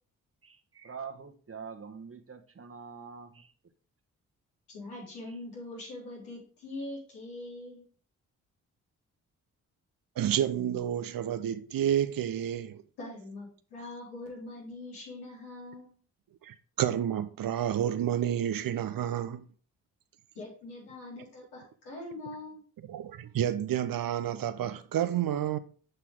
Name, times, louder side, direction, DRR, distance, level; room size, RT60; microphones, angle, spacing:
voice 1, 0.4-3.5 5.3-5.4, right 6 dB, 35° right, 1.3 m, -45 dB
voice 2, 4.7-7.8 13.0-16.0 20.3-22.6, left 2 dB, 80° left, 4.2 m, -43 dB
voice 3, 10.2-12.8 16.4-19.4 22.9-25.6, right 10 dB, 60° right, 0.7 m, -30 dB
8.0 x 5.8 x 3.6 m
hypercardioid pair, 45°, 39 cm